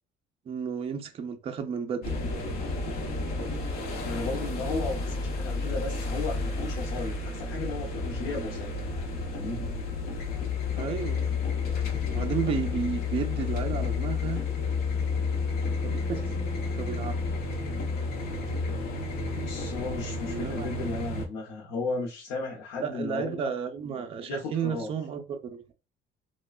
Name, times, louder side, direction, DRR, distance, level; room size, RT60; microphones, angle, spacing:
voice 1, 0.5-2.2 10.7-11.3 12.1-14.4 15.8-16.2 16.8-17.2 20.3-20.7 22.8-25.6, right 7 dB, 30° right, 0.4 m, -32 dB
sound 1, 2.0-21.3, left 4 dB, 55° left, 0.8 m, -31 dB
voice 2, 4.0-8.8 9.3-9.7 19.3-23.5 24.3-24.9, left 3 dB, 90° left, 0.7 m, -35 dB
3.1 x 2.2 x 2.3 m
cardioid pair, 170°, 19 cm